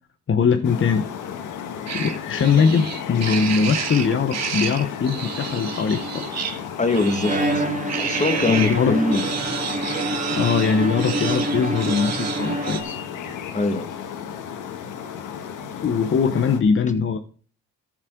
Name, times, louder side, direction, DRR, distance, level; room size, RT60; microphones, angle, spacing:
voice 1, 0.3-1.1 1.9-6.3 8.5-9.0 10.3-13.0 15.8-17.2, left 6 dB, 40° left, 1.0 m, -21 dB
sound 1, 0.6-16.6, left 8 dB, 85° left, 1.7 m, -34 dB
sound 2, 1.9-8.8 9.1-12.8, right 7 dB, 60° right, 1.7 m, -30 dB
voice 2, 6.8-7.6 7.9-9.3 13.5-13.9, left 2 dB, 25° left, 1.8 m, -22 dB
Bowed string instrument, 7.2-13.3, right 1 dB, 25° right, 2.2 m, -27 dB
14.0 x 7.5 x 3.8 m
cardioid pair, 90°, 30 cm